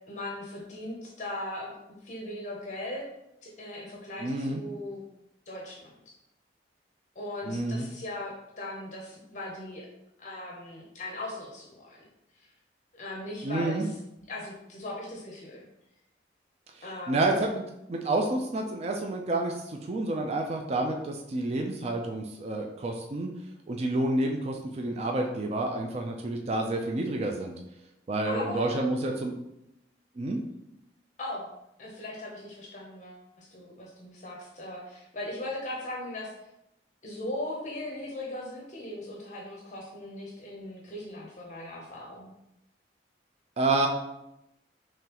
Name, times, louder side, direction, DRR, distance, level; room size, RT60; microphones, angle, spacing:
voice 1, 0.1-1.7 2.0-3.1 3.4-5.0 5.5-5.9 7.2-9.9 10.2-12.0 12.4-12.5 13.0-13.9 14.3-15.6 16.8-17.3 28.2-28.8 31.2-31.5 31.8-36.3 37.0-42.3, left 1 dB, 40° left, -2 dB, 0.7 m, -38 dB
voice 2, 4.2-4.6 7.4-7.9 13.4-13.9 16.7-23.3 23.7-27.5 28.1-29.3 30.2-30.4 43.6-43.9, right 2 dB, 35° right, 2 dB, 0.3 m, -29 dB
3.8 x 3.1 x 2.9 m, 0.85 s
head